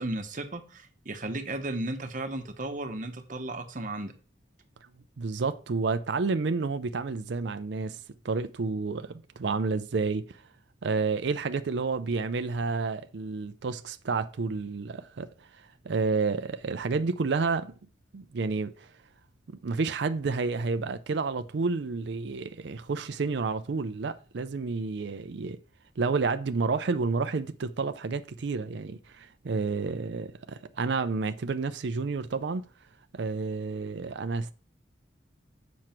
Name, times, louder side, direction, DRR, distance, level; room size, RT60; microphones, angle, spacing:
voice 1, 0.0-4.1, right 2 dB, 45° right, 1.0 m, -34 dB
voice 2, 5.2-8.0 8.2-10.4 10.8-17.7 18.1-18.9 19.6-25.6 26.0-32.7 33.1-34.5, right 4 dB, 65° right, 0.5 m, -30 dB
7.6 x 6.3 x 4.4 m
head